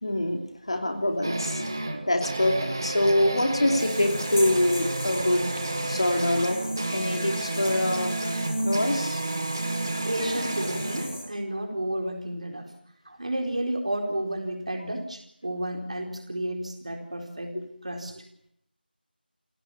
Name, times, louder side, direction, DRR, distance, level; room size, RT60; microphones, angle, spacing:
voice 1, 0.0-2.6 2.8-5.5 5.9-6.6 6.9-8.4 8.6-9.2 17.5-17.6, left 1 dB, 35° left, 5 dB, 2.8 m, -25 dB
sound 1, 1.2-11.3, right 2 dB, 20° right, 1.5 m, -31 dB
sound 2, 3.8-11.2, left 2 dB, 15° left, 2.7 m, -40 dB
voice 2, 10.0-12.7 13.1-17.6 17.8-18.2, right 1 dB, 40° right, 3 dB, 4.2 m, -31 dB
28.0 x 17.0 x 7.1 m, 0.72 s
figure-of-eight pair, 175°, 6 cm